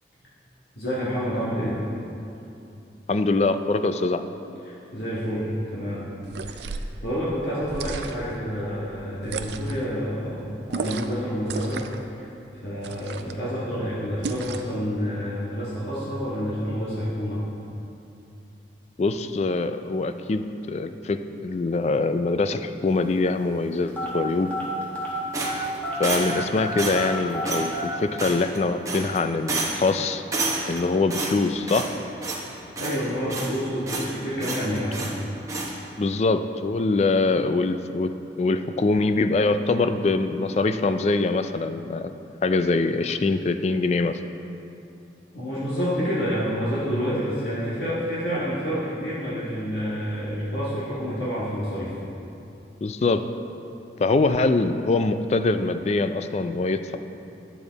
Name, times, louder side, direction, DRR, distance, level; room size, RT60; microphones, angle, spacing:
voice 1, 0.7-1.8 4.7-6.1 6.4-6.7 7.0-11.8 12.1-12.3 12.6-17.4 32.8-35.1 45.3-52.0, equal, 65° left, -9 dB, 1.6 m, -28 dB
voice 2, 3.1-4.2 19.0-24.5 26.0-30.2 30.7-31.9 36.0-38.1 38.4-42.1 42.4-44.2 52.8-53.2 54.0-57.0, left 3 dB, 35° left, 10 dB, 0.3 m, -23 dB
sound 1, 6.2-6.9 7.7-8.4 9.2-9.8 10.7-11.2 11.4-12.0 12.8-13.4 14.2-14.8, right 4 dB, 70° right, 0.4 m, -33 dB
sound 2, 23.9-25.6 25.8-27.9, equal, 10° left, 1.4 m, -30 dB
sound 3, 25.3-26.4 26.8-27.1 27.4-27.7 28.2-28.6 28.8-29.2 29.5-29.9 30.3-30.8 31.1-32.5 32.8-33.6 33.9-34.1 34.4-35.2 35.5-35.7, right 2 dB, 20° right, 0.9 m, -29 dB
9.8 x 7.0 x 4.0 m, 2.7 s
head